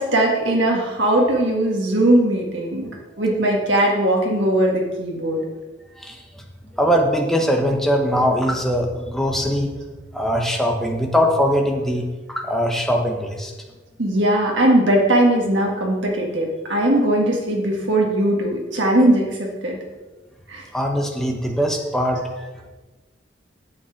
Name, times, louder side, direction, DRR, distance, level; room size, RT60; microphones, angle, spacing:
voice 1, 0.0-2.9 3.2-5.4 14.0-19.8 20.5-20.6, right 1 dB, 80° right, -1 dB, 1.9 m, -19 dB
voice 2, 6.0-6.4 6.7-9.7 10.1-13.5 20.7-22.7, equal, ahead, 1 dB, 1.1 m, -21 dB
8.7 x 7.2 x 5.8 m, 1.2 s
head